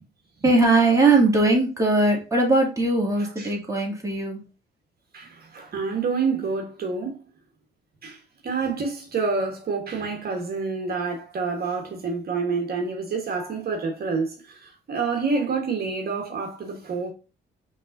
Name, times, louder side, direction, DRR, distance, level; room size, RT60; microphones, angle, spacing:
voice 1, 0.4-4.4, right 2 dB, 15° right, 2.1 m, -20 dB
voice 2, 5.1-7.2 8.0-8.2 8.4-17.1, right 4 dB, 50° right, 1.2 m, -28 dB
5.2 x 3.3 x 2.5 m
cardioid pair, 90°, 20 cm